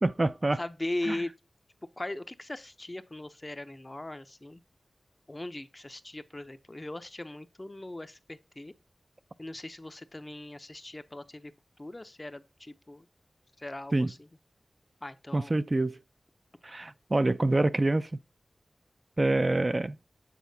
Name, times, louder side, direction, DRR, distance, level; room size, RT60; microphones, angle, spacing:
voice 1, 0.0-0.6 1.1-1.2 13.9-14.1 15.3-16.0 16.6-18.1 19.2-20.0, right 2 dB, 35° right, 0.3 m, -26 dB
voice 2, 0.5-1.3 2.0-4.6 5.3-8.7 9.4-11.5 11.8-13.1 13.6-14.3 15.0-15.6, left 1 dB, 30° left, 0.6 m, -39 dB
8.3 x 4.2 x 2.7 m
wide cardioid pair, 60°, 0 cm